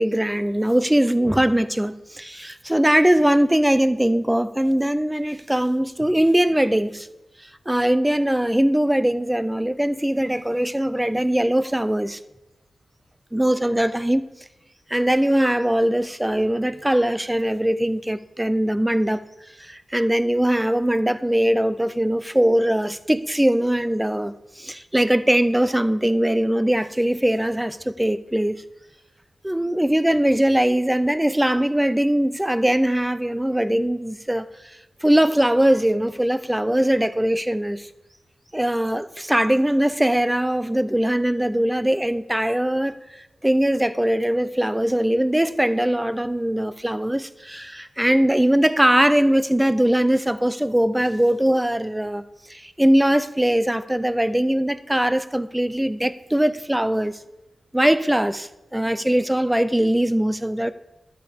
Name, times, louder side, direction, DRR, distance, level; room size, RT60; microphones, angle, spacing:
voice 1, 0.0-7.1 7.7-12.2 13.3-14.3 14.9-19.2 19.6-28.6 29.4-34.5 35.0-37.9 38.5-43.0 43.4-57.2 57.7-60.7, right 1 dB, 10° right, 0.3 m, -21 dB
12.0 x 8.1 x 3.5 m
wide cardioid pair, 110°, 0 cm